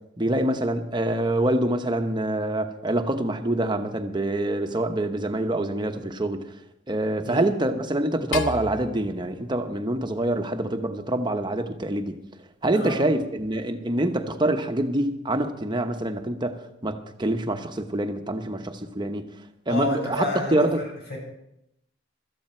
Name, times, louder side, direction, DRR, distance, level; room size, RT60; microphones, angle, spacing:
voice 1, 0.2-6.4 6.9-12.2 12.6-19.2 19.7-20.8, right 1 dB, 25° right, 6 dB, 1.0 m, -26 dB
sound 1, 8.3-10.7, left 4 dB, 85° left, 1.0 m, -35 dB
voice 2, 19.7-21.2, left 1 dB, 60° left, -1 dB, 5.8 m, -30 dB
16.5 x 13.5 x 4.5 m, 0.81 s
head